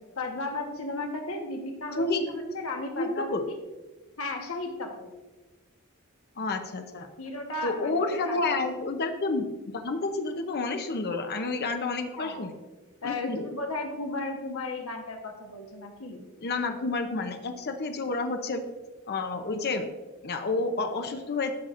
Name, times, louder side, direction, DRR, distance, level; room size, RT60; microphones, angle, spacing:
voice 1, 0.2-3.4 4.2-5.1 7.2-8.8 12.1-12.5 13.0-16.3, left 2 dB, 70° left, 2 dB, 1.2 m, -35 dB
voice 2, 3.0-3.5 6.4-7.1 7.6-9.5 9.7-12.5 13.0-13.5 16.4-18.6 19.1-19.9 20.2-21.5, left 3 dB, 50° left, 5 dB, 0.7 m, -29 dB
13.5 x 5.7 x 2.5 m, 1.2 s
head